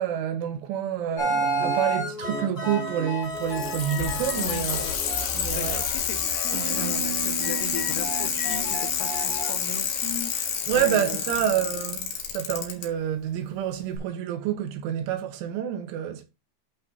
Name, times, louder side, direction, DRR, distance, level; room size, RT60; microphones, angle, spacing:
voice 1, 0.0-4.8 5.3-5.8 10.7-16.3, right 10 dB, 75° right, 3.5 m, -28 dB
sound 1, 1.2-9.5, right 2 dB, 25° left, 2.4 m, -32 dB
Bicycle, 3.2-12.9 14.0-14.1, left 7 dB, 60° left, 3.2 m, -28 dB
voice 2, 4.3-5.0 5.5-11.3 11.9-12.0, left 8 dB, 85° left, 3.9 m, -38 dB
sound 2, 6.5-10.3, right 10 dB, 45° right, 1.9 m, -37 dB
11.5 x 4.2 x 4.0 m
omnidirectional pair, 5.8 m